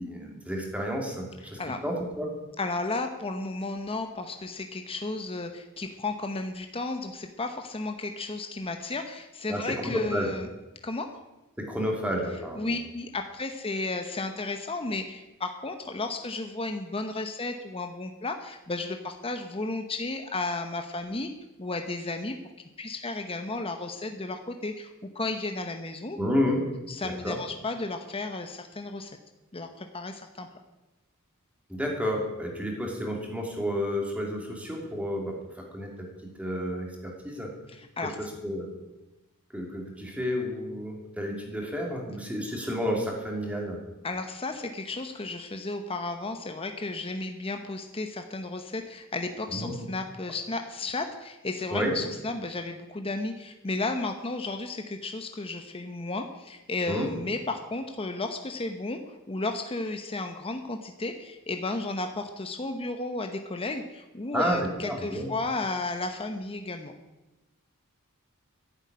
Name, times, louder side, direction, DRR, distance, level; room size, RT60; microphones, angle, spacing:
voice 1, 0.0-2.3 9.5-10.3 11.6-12.7 26.2-26.7 27.0-27.4 31.7-37.5 38.0-38.7 39.5-43.8 49.5-49.7 51.7-51.9 56.9-57.1 64.3-65.3, equal, 5° right, 0 dB, 2.8 m, -31 dB
voice 2, 2.6-10.5 10.8-11.1 12.6-21.3 21.6-22.4 22.8-26.2 27.0-29.2 29.5-30.5 38.0-38.2 44.0-66.9, left 2 dB, 25° left, 6 dB, 0.9 m, -33 dB
11.0 x 8.0 x 9.6 m, 1.0 s
head